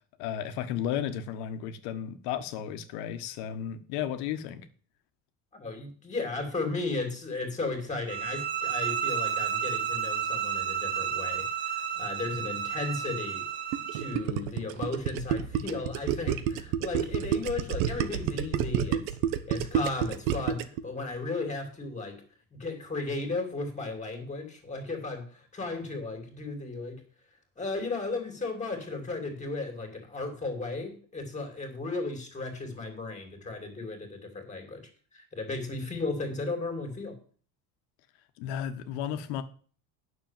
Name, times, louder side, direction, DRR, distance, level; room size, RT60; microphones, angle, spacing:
voice 1, 0.2-4.7 38.4-39.4, left 9 dB, 70° left, 9 dB, 1.5 m, -33 dB
voice 2, 5.5-13.4 13.9-19.2 19.5-22.2 22.5-27.0 27.6-37.2, left 3 dB, 20° left, 5 dB, 2.7 m, -35 dB
sound 1, 8.1-14.2, right 8 dB, 30° right, 2.3 m, -31 dB
Gurgling, 13.7-20.8, right 10 dB, 85° right, 1.2 m, -29 dB
9.3 x 6.8 x 7.4 m, 0.43 s
cardioid pair, 155°, 40 cm